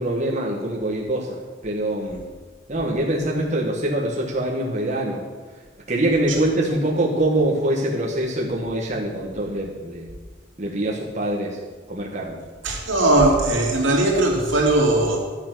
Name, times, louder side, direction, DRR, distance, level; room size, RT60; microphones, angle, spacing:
voice 1, 0.0-2.3 2.7-5.2 5.9-10.1 10.6-11.6 11.9-12.4, right 1 dB, 40° right, -4 dB, 1.4 m, -24 dB
voice 2, 12.6-15.2, right 2 dB, 80° right, -2 dB, 2.6 m, -19 dB
11.5 x 6.9 x 6.0 m, 1.4 s
head